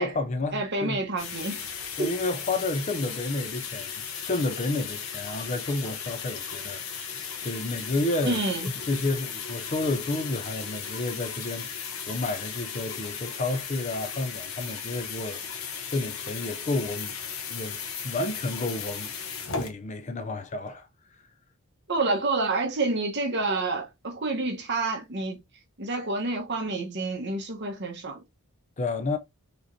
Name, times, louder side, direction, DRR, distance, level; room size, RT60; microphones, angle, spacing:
voice 1, 0.0-1.0 2.0-17.2 17.5-17.8 18.0-19.1 19.4-20.9 28.8-29.2, left 2 dB, 30° left, 0.5 m, -31 dB
voice 2, 0.5-1.7 2.0-2.1 8.2-8.7 21.9-25.4 25.8-28.2, right 3 dB, 50° right, 1.1 m, -28 dB
sound 1, 1.2-19.7, left 6 dB, 65° left, 1.0 m, -36 dB
4.9 x 3.0 x 2.7 m
head